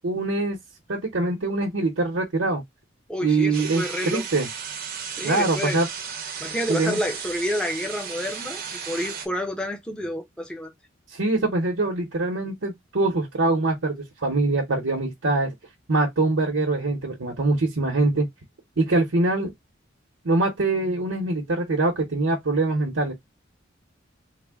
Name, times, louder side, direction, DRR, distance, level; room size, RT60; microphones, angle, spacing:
voice 1, 0.0-0.6 0.9-2.6 3.2-4.5 5.2-5.9 6.7-7.0 11.1-13.9 14.2-15.5 15.9-18.3 18.8-19.5 20.2-23.1, right 2 dB, 80° right, 0.9 m, -23 dB
voice 2, 3.1-4.3 5.2-5.8 6.4-10.7, equal, 5° left, 0.7 m, -29 dB
sound 1, 3.5-9.3, right 7 dB, 50° right, 0.7 m, -34 dB
3.4 x 2.1 x 3.5 m
head